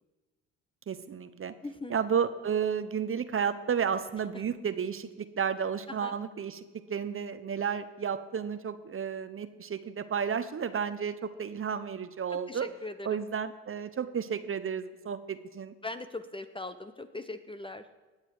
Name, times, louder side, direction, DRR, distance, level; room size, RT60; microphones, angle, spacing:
voice 1, 0.9-1.5 1.9-12.7 13.0-15.7, right 7 dB, 35° right, 11 dB, 0.9 m, -32 dB
voice 2, 1.6-2.0 5.9-6.1 12.5-13.2 15.8-17.9, left 2 dB, 15° left, 9 dB, 0.8 m, -40 dB
19.5 x 7.5 x 4.8 m, 1.3 s
hypercardioid pair, 70°, 38 cm